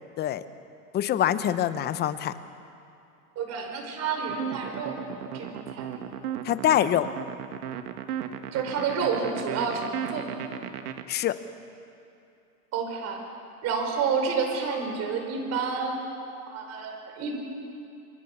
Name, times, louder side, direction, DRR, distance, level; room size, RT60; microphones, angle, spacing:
voice 1, 0.9-2.3 6.4-7.1 11.1-11.4, left 11 dB, 20° left, 13 dB, 0.9 m, -24 dB
voice 2, 3.4-6.1 8.5-10.4 12.7-13.2 13.6-16.1 16.5-17.4, right 5 dB, 35° right, 3 dB, 5.4 m, -30 dB
sound 1, 4.3-11.0, right 10 dB, 70° right, 1.9 m, -35 dB
27.5 x 23.0 x 7.2 m, 2.6 s
hypercardioid pair, 140°, 47 cm